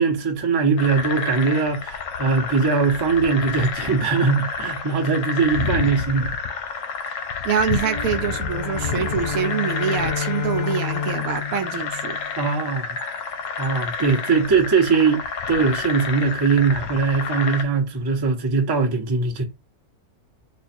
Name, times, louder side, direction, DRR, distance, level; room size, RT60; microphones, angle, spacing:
voice 1, 0.0-6.3 12.4-12.9 13.6-19.4, right 4 dB, 25° right, 0.6 m, -21 dB
sound 1, 0.8-17.6, left 5 dB, 65° left, 0.9 m, -29 dB
voice 2, 7.4-12.2, right 8 dB, 70° right, 1.0 m, -25 dB
sound 2, 7.7-12.4, left 6 dB, 20° left, 0.6 m, -30 dB
3.1 x 2.5 x 4.3 m
omnidirectional pair, 1.6 m